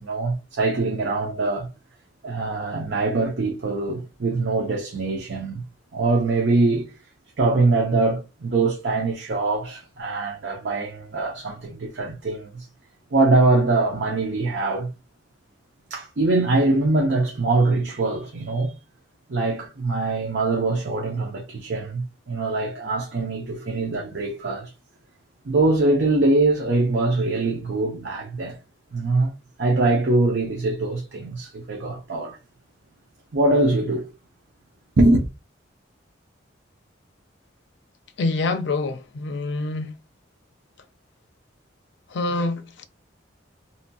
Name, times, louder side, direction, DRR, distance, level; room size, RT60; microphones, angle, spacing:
voice 1, 0.0-1.7 2.2-5.6 5.9-6.9 7.4-12.7 13.1-14.9 15.9-18.7 19.3-24.7 25.5-28.6 28.9-29.3 29.6-32.4 33.3-34.1 35.0-35.3, right 2 dB, 60° right, 0.6 m, -23 dB
voice 2, 38.2-39.9 42.1-42.8, left 3 dB, 65° left, 0.5 m, -26 dB
2.7 x 2.2 x 2.6 m
head